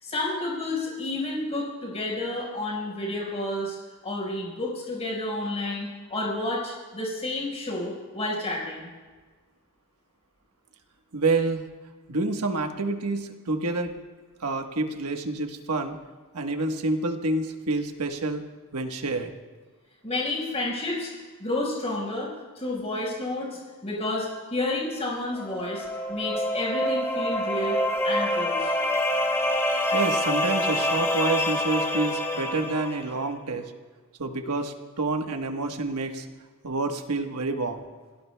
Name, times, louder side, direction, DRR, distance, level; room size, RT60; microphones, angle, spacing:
voice 1, 0.0-3.8 4.0-8.9 20.0-21.1 21.4-27.8 28.0-28.7, left 2 dB, 30° left, -4 dB, 4.6 m, -30 dB
voice 2, 11.1-11.6 12.1-13.9 14.4-16.0 16.3-18.4 18.7-19.3 29.9-33.7 34.2-36.3 36.6-37.8, right 3 dB, 90° right, 5 dB, 1.2 m, -28 dB
sound 1, 25.4-33.1, left 1 dB, 10° left, 2.1 m, -26 dB
28.0 x 17.5 x 2.2 m, 1.4 s
head